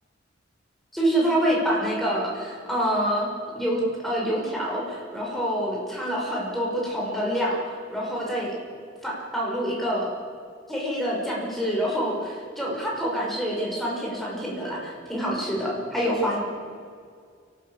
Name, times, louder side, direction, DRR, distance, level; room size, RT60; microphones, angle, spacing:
voice 1, 0.9-3.3 3.6-8.5 9.0-10.1 10.7-16.4, equal, ahead, -4 dB, 5.9 m, -26 dB
28.5 x 12.5 x 8.7 m, 2.2 s
head